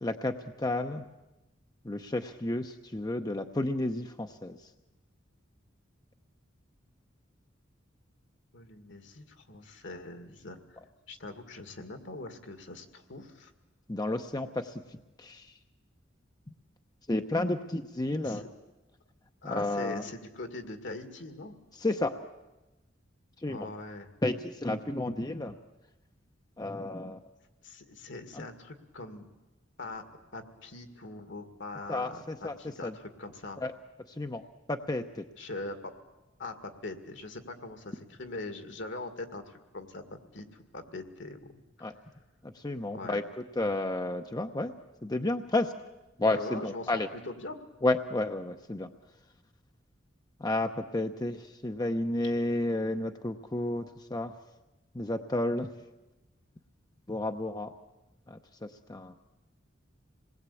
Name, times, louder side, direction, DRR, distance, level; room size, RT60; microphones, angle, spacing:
voice 1, 0.0-1.0 1.8-4.6 13.9-14.8 15.2-15.5 17.1-18.4 19.4-20.0 21.8-22.1 23.4-23.7 24.2-25.6 26.6-27.2 28.3-28.4 31.9-32.5 32.8-32.9 33.6-33.7 34.1-34.4 34.7-35.2 41.8-41.9 42.4-43.2 43.6-44.7 45.0-45.7 46.2-47.1 47.8-48.9 50.4-54.3 54.9-55.7 57.1-57.7 58.3-59.2, left 2 dB, 20° left, 6 dB, 0.8 m, -31 dB
voice 2, 8.5-10.8 11.1-13.5 18.2-18.5 19.4-21.5 23.4-24.1 27.6-29.3 29.8-30.0 30.3-33.6 35.4-35.9 36.4-41.5 42.9-43.2 46.3-47.6, left 2 dB, 65° left, 7 dB, 2.2 m, -42 dB
26.5 x 20.0 x 8.4 m, 1.0 s
head